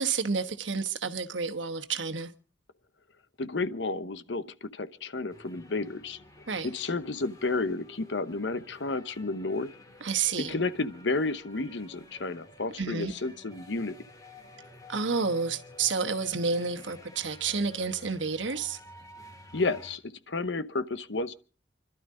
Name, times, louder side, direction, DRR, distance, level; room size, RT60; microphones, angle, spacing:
voice 1, 0.0-2.3 6.5-6.7 10.0-10.6 12.8-13.1 14.9-18.8, right 5 dB, 90° right, 1.3 m, -30 dB
voice 2, 3.4-6.2 6.6-9.7 10.5-13.9 19.5-21.3, left 3 dB, 75° left, 0.9 m, -31 dB
sound 1, 5.3-20.0, left 1 dB, 20° left, 2.1 m, -52 dB
29.0 x 12.0 x 3.7 m
head